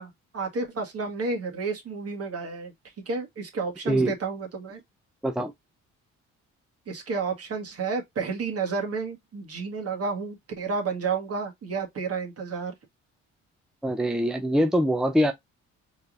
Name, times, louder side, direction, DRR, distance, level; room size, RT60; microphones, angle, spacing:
voice 1, 0.0-2.7 3.0-4.8 6.9-12.7, right 4 dB, 50° right, 1.7 m, -31 dB
voice 2, 13.8-15.3, equal, ahead, 0.5 m, -23 dB
4.5 x 3.3 x 2.5 m
cardioid pair, 90°, 30 cm